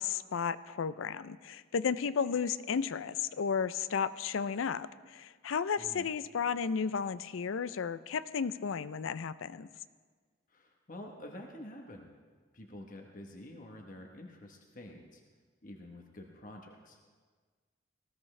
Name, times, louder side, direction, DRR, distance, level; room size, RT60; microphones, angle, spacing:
voice 1, 0.0-9.7, left 6 dB, 90° left, 16 dB, 0.5 m, -33 dB
voice 2, 5.8-6.1 10.5-12.1 12.5-15.2 15.6-17.0, left 1 dB, 45° left, 2 dB, 1.1 m, -48 dB
19.0 x 15.5 x 3.3 m, 1.5 s
head